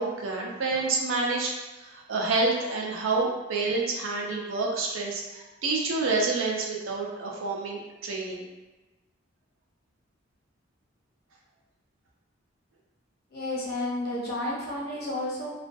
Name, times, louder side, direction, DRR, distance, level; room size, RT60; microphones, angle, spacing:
voice 1, 0.0-8.5, right 3 dB, 85° right, -1 dB, 0.5 m, -28 dB
voice 2, 13.3-15.5, left 1 dB, 50° left, -5 dB, 0.7 m, -31 dB
2.4 x 2.2 x 2.5 m, 1.1 s
head